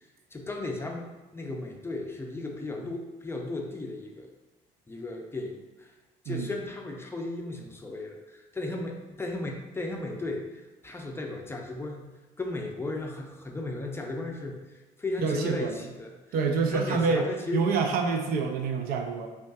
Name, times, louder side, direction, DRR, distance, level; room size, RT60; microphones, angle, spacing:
voice 1, 0.3-1.1 1.3-4.3 4.9-5.9 6.2-12.1 12.4-16.1 16.7-17.7, left 2 dB, 15° left, 1 dB, 0.5 m, -35 dB
voice 2, 15.2-15.8 16.3-17.3 17.5-19.3, right 5 dB, 70° right, 4 dB, 0.5 m, -27 dB
5.2 x 2.3 x 2.4 m, 1.1 s
supercardioid pair, 90°, 16 cm